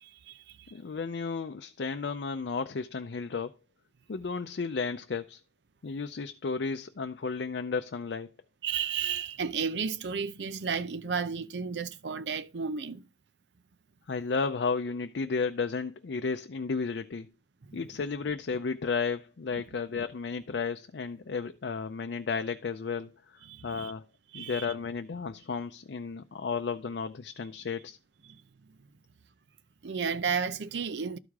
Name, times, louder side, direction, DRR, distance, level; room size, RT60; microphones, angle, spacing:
voice 1, 0.0-0.6 8.6-13.0 17.7-17.8 23.5-23.9 24.3-24.7 28.3-28.4 29.8-31.2, right 6 dB, 80° right, 0.6 m, -33 dB
voice 2, 0.7-3.5 4.1-5.4 5.8-8.3 14.1-17.3 17.7-24.1 24.3-28.0, left 5 dB, 80° left, 0.5 m, -33 dB
12.5 x 4.8 x 3.5 m
head